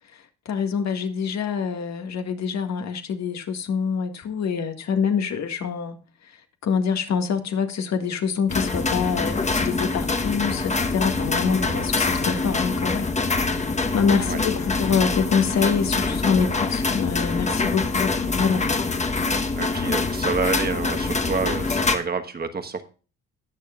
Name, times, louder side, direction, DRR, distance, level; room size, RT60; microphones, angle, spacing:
voice 1, 0.1-6.0 6.6-13.1 13.4-18.6, left 6 dB, 65° left, 1.8 m, -25 dB
sound 1, 8.5-22.0, left 3 dB, 25° left, 1.1 m, -25 dB
voice 2, 11.5-11.9 14.3-14.4 19.5-22.8, right 4 dB, 30° right, 1.3 m, -28 dB
20.0 x 6.7 x 2.4 m
cardioid pair, 90°, 30 cm